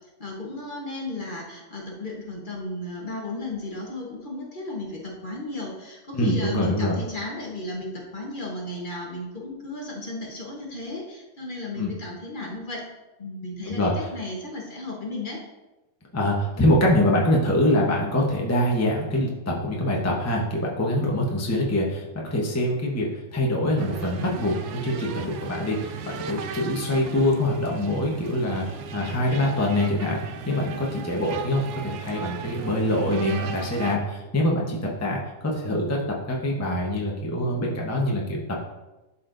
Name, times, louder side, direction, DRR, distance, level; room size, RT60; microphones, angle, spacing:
voice 1, 0.2-12.8 13.2-15.4, left 2 dB, 40° left, -2 dB, 1.2 m, -34 dB
voice 2, 6.1-7.0 11.8-11.9 13.7-13.9 16.1-24.6 24.8-38.6, left 1 dB, 15° left, -2 dB, 0.9 m, -24 dB
sound 1, 23.8-34.0, right 5 dB, 70° right, 0.9 m, -37 dB
11.5 x 4.3 x 2.6 m, 1.0 s
omnidirectional pair, 1.4 m